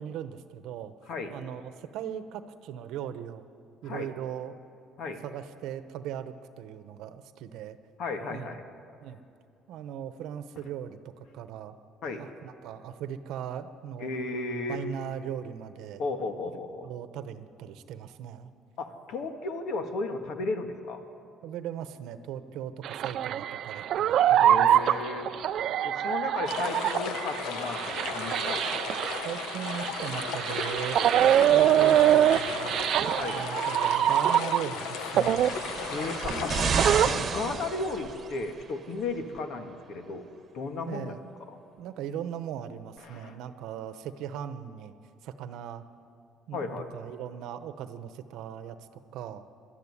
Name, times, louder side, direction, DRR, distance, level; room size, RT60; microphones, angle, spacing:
voice 1, 0.0-0.9 1.3-3.5 3.8-4.5 5.2-7.8 8.3-8.5 9.0-9.2 9.7-11.8 12.2-14.1 14.7-16.0 16.8-18.5 21.4-25.0 29.2-31.0 31.4-32.9 33.3-35.5 40.9-41.2 41.8-45.0 45.2-45.8 46.5-49.4, right 9 dB, 70° right, 11 dB, 1.0 m, -38 dB
voice 2, 1.1-1.4 3.8-4.1 5.0-5.2 8.0-8.6 12.0-12.2 14.0-14.8 16.0-16.9 18.8-21.0 24.4-25.3 25.8-28.7 33.2-33.4 35.9-41.2 41.5-41.6 43.0-43.3 46.5-46.9, left 3 dB, 55° left, 6 dB, 1.9 m, -34 dB
sound 1, 22.8-34.8 35.1-37.1, right 11 dB, 50° right, 0.5 m, -24 dB
sound 2, 26.5-37.1, left 7 dB, 80° left, 1.0 m, -36 dB
sound 3, 35.1-38.4 39.4-39.5, right 5 dB, 30° right, 1.5 m, -31 dB
21.5 x 13.0 x 9.8 m, 2.5 s
cardioid pair, 155°, 0 cm